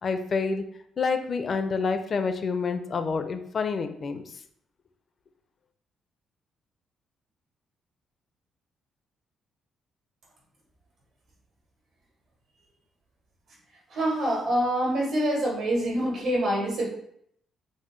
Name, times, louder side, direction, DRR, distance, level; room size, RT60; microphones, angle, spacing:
voice 1, 0.0-0.6 1.0-4.2, left 4 dB, 45° left, 8 dB, 0.4 m, -28 dB
voice 2, 13.9-16.9, right 1 dB, 75° right, -3 dB, 1.5 m, -25 dB
4.1 x 2.2 x 3.1 m, 0.70 s
cardioid pair, 90°, 0 cm